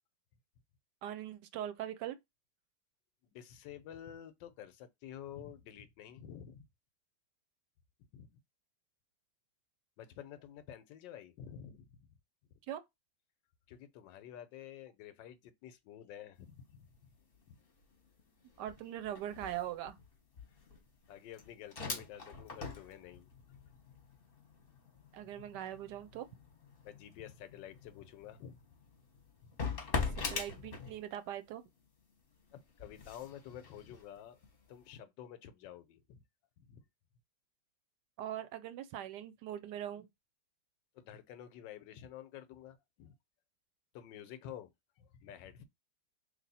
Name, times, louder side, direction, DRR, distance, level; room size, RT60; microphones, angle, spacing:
voice 1, 1.0-2.2 12.7-12.8 18.6-20.0 25.1-26.2 30.3-31.6 38.2-40.1, right 11 dB, 75° right, 1.1 m, -41 dB
voice 2, 3.2-6.7 8.1-8.4 10.0-12.1 12.5-12.6 13.7-16.9 17.5-17.6 21.1-23.3 26.8-28.6 29.4-29.5 32.5-34.4 34.7-36.2 36.6-36.8 40.9-43.2 43.9-45.7, left 10 dB, 90° left, 1.3 m, -50 dB
sound 1, 16.3-16.7 17.0-31.4 31.8-34.8, left 4 dB, 40° left, 1.0 m, -44 dB
3.3 x 2.6 x 4.0 m
omnidirectional pair, 1.9 m